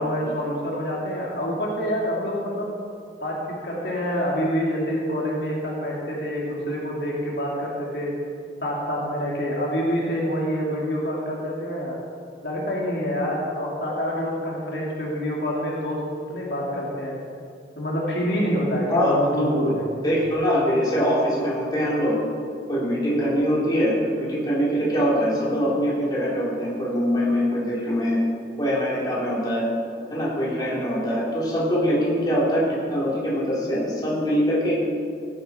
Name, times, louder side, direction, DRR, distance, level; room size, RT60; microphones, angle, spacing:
voice 1, 0.0-2.7 3.2-8.1 8.6-12.0 12.4-16.0 16.3-17.1 17.8-19.8, equal, 65° left, -4 dB, 2.6 m, -26 dB
voice 2, 18.9-19.5 20.0-22.1 22.7-28.2 28.6-29.6 30.1-34.7, equal, 20° left, -6 dB, 3.6 m, -23 dB
16.5 x 11.5 x 4.4 m, 2.2 s
head